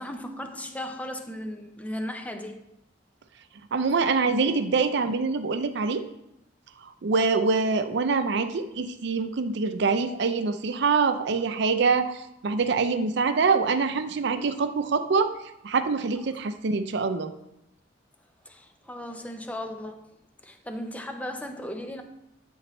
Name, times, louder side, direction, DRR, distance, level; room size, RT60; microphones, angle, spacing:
voice 1, 0.0-2.6 4.2-4.3 18.4-20.0 20.4-22.0, left 1 dB, 10° left, 0.6 m, -36 dB
voice 2, 3.7-6.0 7.0-15.3 15.6-17.3, right 4 dB, 65° right, 0.5 m, -25 dB
10.5 x 4.4 x 3.1 m
head